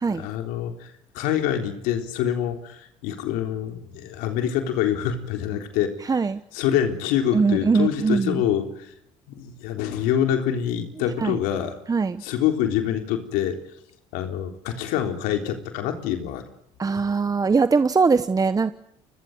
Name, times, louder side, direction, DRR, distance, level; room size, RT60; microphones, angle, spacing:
voice 1, 0.1-0.9 1.1-6.1 6.5-8.9 9.3-11.8 12.2-13.6 14.1-16.4, left 10 dB, 85° left, 6 dB, 3.7 m, -26 dB
voice 2, 6.1-6.4 7.3-8.4 11.2-11.4 11.9-12.2 16.8-18.7, right 4 dB, 25° right, 12 dB, 1.0 m, -21 dB
30.0 x 22.5 x 7.9 m, 0.75 s
supercardioid pair, 80°, 14 cm